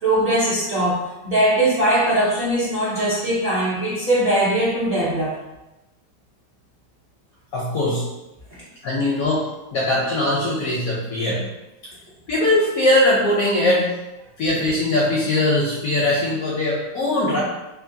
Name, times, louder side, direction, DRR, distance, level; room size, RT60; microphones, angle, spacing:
voice 1, 0.0-5.3, right 1 dB, 70° right, -9 dB, 0.5 m, -20 dB
voice 2, 7.5-8.0 8.8-11.4 12.3-13.9 14.4-17.4, left 1 dB, 75° left, -5 dB, 0.8 m, -20 dB
2.9 x 2.5 x 2.6 m, 0.97 s
omnidirectional pair, 2.0 m